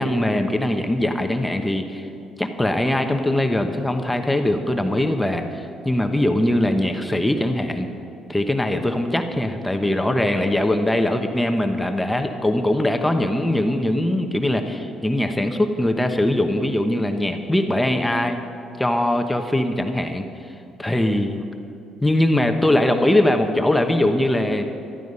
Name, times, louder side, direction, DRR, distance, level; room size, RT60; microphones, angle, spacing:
voice 1, 0.0-2.1 2.4-7.9 8.3-18.4 18.8-20.2 20.8-21.4 22.0-24.6, left 1 dB, 5° left, 5 dB, 1.0 m, -21 dB
13.5 x 12.5 x 5.5 m, 2.6 s
cardioid pair, 90°, 0 cm